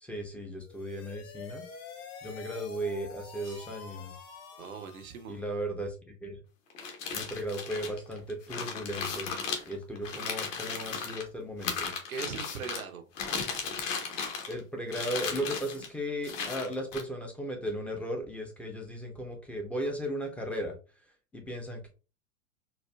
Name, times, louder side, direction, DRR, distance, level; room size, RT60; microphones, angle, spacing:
voice 1, 0.0-1.6 2.2-4.2 5.3-5.9 6.2-6.4 7.1-9.3 9.7-11.9 14.5-20.7 21.3-21.9, equal, 5° left, 2 dB, 0.3 m, -36 dB
sound 1, 0.6-5.4, left 6 dB, 40° left, 0.8 m, -47 dB
voice 2, 4.6-5.4 10.6-10.7 12.1-13.1, right 6 dB, 90° right, 7 dB, 0.7 m, -40 dB
sound 2, 6.7-11.2 11.6-12.8 13.2-14.6 14.9-15.9 16.2-17.0, left 5 dB, 65° left, 1.1 m, -35 dB
4.2 x 2.3 x 2.2 m, 0.33 s
hypercardioid pair, 100°, 41 cm